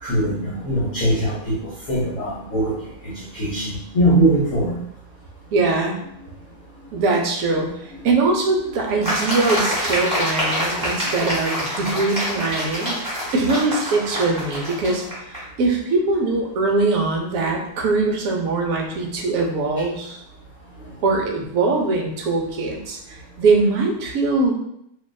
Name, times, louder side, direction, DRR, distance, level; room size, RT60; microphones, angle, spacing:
voice 1, 0.0-2.7 3.0-4.8 8.6-8.7, right 1 dB, 65° left, -8 dB, 0.9 m, -21 dB
voice 2, 5.5-6.0 6.9-13.0 13.3-20.2 21.0-24.5, right 3 dB, 70° right, 0 dB, 0.9 m, -22 dB
sound 1, 9.0-15.4, equal, 5° right, 0.6 m, -26 dB
2.6 x 2.2 x 2.2 m, 0.76 s
omnidirectional pair, 1.6 m